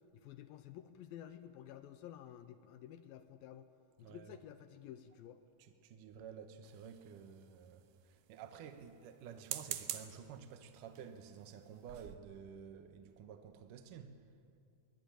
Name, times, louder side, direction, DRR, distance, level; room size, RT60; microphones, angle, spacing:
voice 1, 0.1-3.7 4.0-5.4, left 10 dB, 80° left, 10 dB, 2.4 m, -52 dB
voice 2, 4.0-4.3 5.6-14.2, right 7 dB, 70° right, 7 dB, 2.4 m, -52 dB
sound 1, 6.6-7.4 9.3-10.2 11.0-11.2 11.6-11.7 11.9-12.2, right 12 dB, 90° right, 3.0 m, -44 dB
22.5 x 20.0 x 8.8 m, 2.5 s
omnidirectional pair, 4.4 m